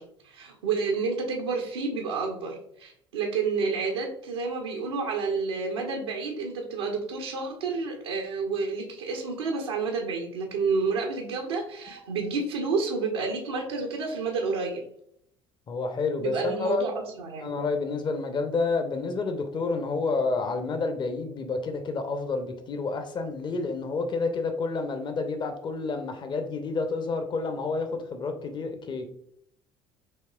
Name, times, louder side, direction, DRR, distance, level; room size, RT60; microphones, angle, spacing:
voice 1, 0.0-14.8 16.2-17.6, right 4 dB, 75° right, 1 dB, 0.7 m, -30 dB
voice 2, 15.7-16.9 17.4-29.1, left 4 dB, 35° left, 6 dB, 0.7 m, -29 dB
6.4 x 3.0 x 2.3 m, 0.70 s
figure-of-eight pair, 55°, 14 cm